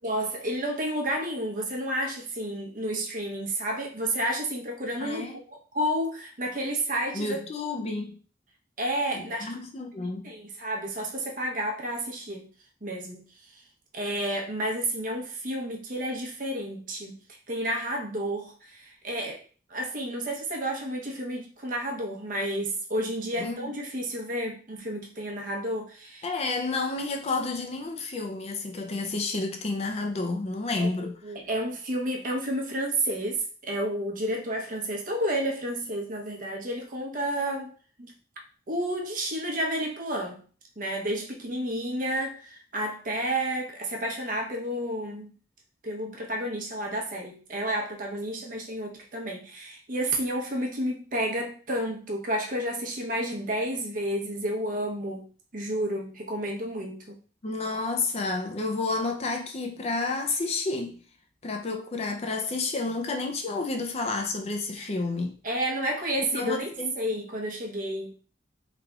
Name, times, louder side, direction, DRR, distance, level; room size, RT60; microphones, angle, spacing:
voice 1, 0.0-5.5 5.7-7.4 8.8-9.5 10.2-12.5 12.8-13.2 13.5-13.6 13.9-17.2 17.5-19.4 19.7-26.4 30.8-37.7 38.0-38.1 38.7-40.4 40.8-45.3 45.8-55.3 55.5-57.2 64.8-64.9 65.4-66.7 67.0-68.2, right 1 dB, 45° right, 0.8 m, -31 dB
voice 2, 5.0-5.4 7.1-8.2 9.1-10.2 23.4-23.7 26.2-31.1 57.4-61.0 61.4-65.4 66.3-66.9, left 3 dB, 35° left, 0.4 m, -30 dB
3.6 x 3.3 x 2.3 m
head